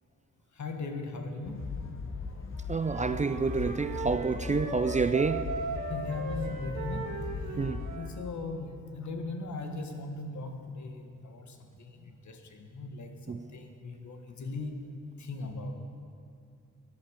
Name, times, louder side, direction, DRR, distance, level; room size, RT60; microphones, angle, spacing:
voice 1, 0.5-2.8 5.9-14.8 15.2-15.7, left 3 dB, 70° left, 1.5 m, -39 dB
sound 1, 1.4-8.0, left 5 dB, 45° left, 1.0 m, -39 dB
voice 2, 2.7-5.5 7.6-7.9 13.3-13.5, right 4 dB, 25° right, 0.4 m, -28 dB
Wind instrument woodwind instrument, 2.8-8.1, right 3 dB, 70° right, 2.0 m, -38 dB
17.0 x 10.5 x 5.0 m
wide cardioid pair, 105°, 30 cm